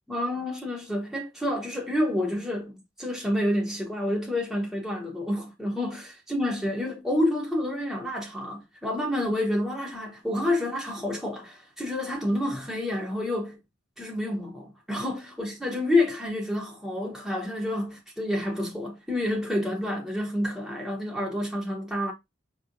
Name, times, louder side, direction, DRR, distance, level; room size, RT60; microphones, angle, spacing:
voice 1, 0.1-2.7 3.0-13.6 14.0-22.1, left 1 dB, ahead, 0.7 m, -29 dB
5.3 x 2.9 x 2.5 m
head